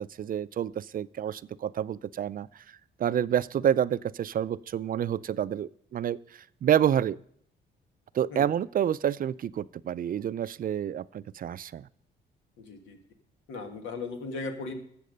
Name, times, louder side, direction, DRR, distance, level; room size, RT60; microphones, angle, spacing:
voice 1, 0.0-2.5 3.0-7.2 8.1-11.9, right 9 dB, 45° right, 17 dB, 0.4 m, -28 dB
voice 2, 12.6-13.0 13.5-14.8, left 3 dB, 85° left, 7 dB, 1.8 m, -37 dB
13.5 x 7.5 x 5.2 m, 0.67 s
cardioid pair, 90°, 20 cm